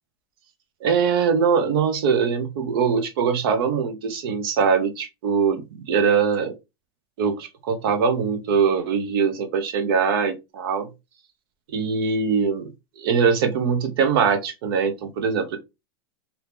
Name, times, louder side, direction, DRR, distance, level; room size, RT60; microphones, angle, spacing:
voice 1, 0.8-6.5 7.2-10.9 11.7-12.7 13.0-15.6, right 6 dB, 70° right, 0.8 m, -22 dB
2.8 x 2.7 x 3.4 m
supercardioid pair, 140°, 13 cm